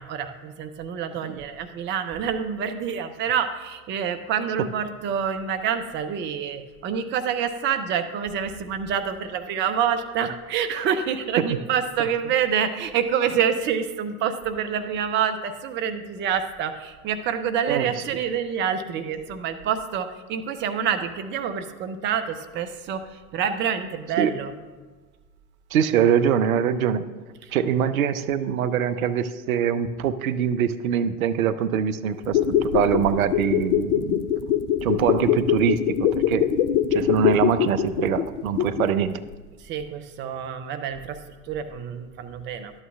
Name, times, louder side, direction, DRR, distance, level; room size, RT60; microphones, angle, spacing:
voice 1, 0.0-24.5 39.6-41.2 41.5-42.7, right 8 dB, 25° right, 8 dB, 0.6 m, -27 dB
voice 2, 17.7-18.0 24.2-24.3 25.7-27.1 27.5-34.3 34.8-36.5 36.9-39.2, right 8 dB, 65° right, 12 dB, 0.6 m, -23 dB
sound 1, 32.2-39.0 39.3-39.4, left 10 dB, 50° left, 0.6 m, -23 dB
12.0 x 8.7 x 2.4 m, 1.3 s
figure-of-eight pair, 80°, 45 cm